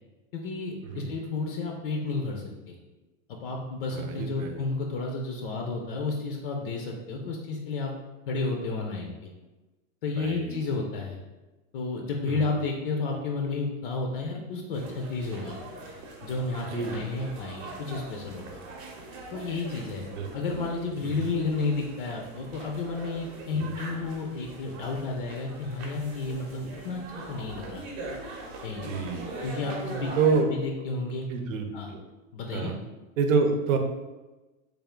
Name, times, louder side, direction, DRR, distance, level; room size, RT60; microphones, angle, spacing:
voice 1, 0.3-2.8 3.3-7.9 8.3-9.3 10.0-11.2 11.7-15.6 16.2-18.6 19.3-20.0 20.3-27.0 27.3-27.8 28.6-29.1 29.4-30.1 30.4-31.4 31.7-31.9 32.3-32.7, left 3 dB, 45° left, 1 dB, 0.5 m, -32 dB
voice 2, 0.8-1.1 3.9-4.6 10.2-10.6 12.3-12.5 16.7-17.0 20.2-20.3 20.5-20.6 21.2-21.3 23.5-23.6 28.8-29.3 30.2-30.5 31.3-32.0 32.5-32.8 33.2-33.8, right 5 dB, 75° right, 5 dB, 0.7 m, -27 dB
sound 1, 14.7-30.4, right 2 dB, 40° right, 0.8 m, -42 dB
3.4 x 2.4 x 3.6 m, 1.1 s
supercardioid pair, 150°, 40 cm